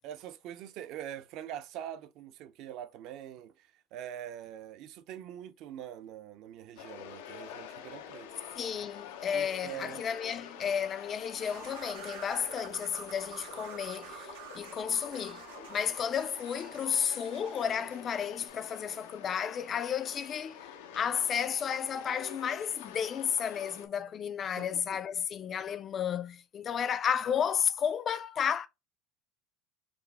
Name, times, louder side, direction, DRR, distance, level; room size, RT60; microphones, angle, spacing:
voice 1, 0.0-8.3 9.3-10.1 24.6-25.0, right 10 dB, 55° right, 0.6 m, -44 dB
sound 1, 6.8-23.9, left 8 dB, 90° left, 0.7 m, -47 dB
voice 2, 8.6-15.4 15.7-20.6 20.9-28.7, left 8 dB, 30° left, 0.4 m, -32 dB
sound 2, 11.4-18.1, right 9 dB, 90° right, 0.9 m, -48 dB
5.0 x 2.1 x 3.4 m
supercardioid pair, 140°, 0 cm